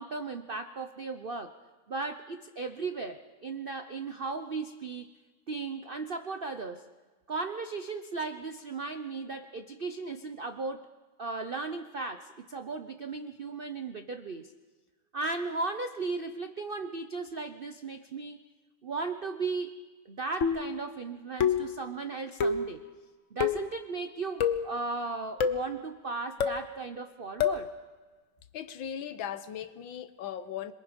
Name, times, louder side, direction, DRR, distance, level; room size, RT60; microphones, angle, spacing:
voice 1, 0.0-1.6 1.9-5.1 5.5-6.9 7.3-10.9 11.2-14.5 15.1-18.4 18.8-19.8 20.1-22.8 23.3-27.7, right 4 dB, 70° right, 8 dB, 0.5 m, -36 dB
sound 1, 20.4-20.8 21.4-21.8 22.4-22.7 23.4-23.7 24.4-24.7 25.4-25.7 26.4-26.7 27.4-27.7, left 7 dB, 50° left, 1.1 m, -27 dB
voice 2, 28.5-30.7, left 9 dB, 75° left, 12 dB, 1.6 m, -38 dB
27.0 x 22.5 x 5.2 m, 1.3 s
omnidirectional pair, 2.2 m